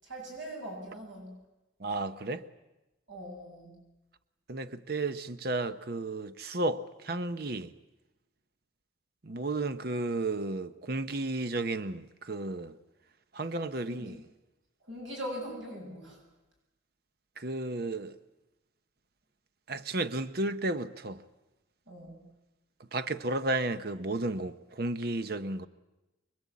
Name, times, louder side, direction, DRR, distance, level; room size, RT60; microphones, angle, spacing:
voice 1, 0.0-1.3 3.1-3.8 13.9-14.2 14.9-16.2 21.9-22.3, equal, 80° right, 7.7 m, -41 dB
voice 2, 1.8-2.4 4.5-7.7 9.2-12.7 13.3-14.2 17.4-18.2 19.7-21.2 22.9-25.7, right 2 dB, 50° right, 0.8 m, -33 dB
25.0 x 22.5 x 8.4 m
head